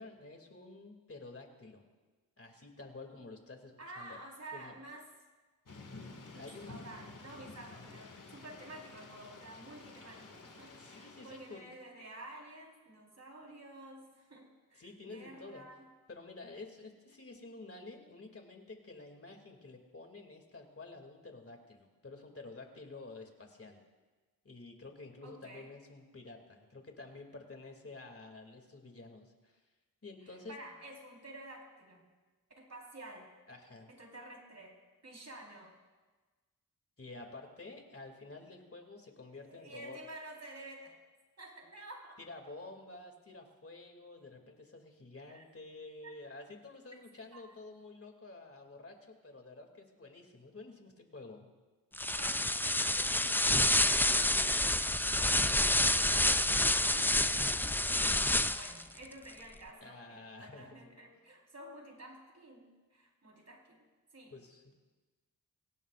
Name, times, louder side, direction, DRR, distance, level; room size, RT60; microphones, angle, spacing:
voice 1, 0.0-1.9 2.4-4.2 4.5-4.8 6.3-6.8 10.7-11.6 14.8-15.7 16.1-23.8 24.4-29.6 30.0-30.6 33.5-33.9 37.0-40.0 42.2-51.5 59.8-60.9 64.3-64.6, left 3 dB, 40° left, 3 dB, 2.7 m, -50 dB
voice 2, 3.8-5.1 6.3-15.9 25.2-25.7 30.2-32.1 32.6-33.3 33.9-35.8 39.4-41.0 41.4-42.2 45.3-45.4 46.0-46.1 47.3-47.4 52.2-63.8 64.1-64.3, right 1 dB, 45° right, 0 dB, 4.3 m, -51 dB
Thunder / Rain, 5.7-11.6, left 3 dB, 60° left, 2.2 m, -51 dB
sound 1, 51.9-58.8, left 1 dB, 5° left, 0.4 m, -28 dB
25.0 x 17.0 x 2.5 m, 1.3 s
cardioid pair, 65°, 36 cm